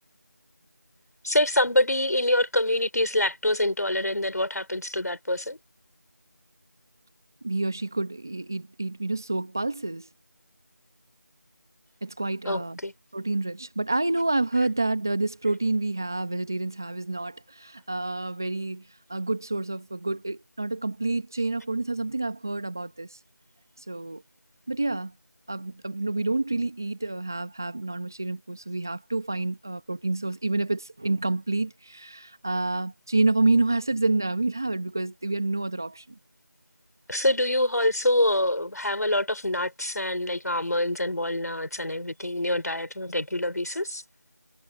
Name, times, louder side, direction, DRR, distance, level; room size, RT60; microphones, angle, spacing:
voice 1, 1.2-5.6 12.4-12.9 37.1-44.0, left 1 dB, 60° left, 4.2 m, -25 dB
voice 2, 7.4-10.1 12.0-12.8 13.1-23.2 23.9-24.2 24.7-25.1 25.5-36.0, right 2 dB, 10° right, 1.2 m, -28 dB
figure-of-eight pair, 180°, 10 cm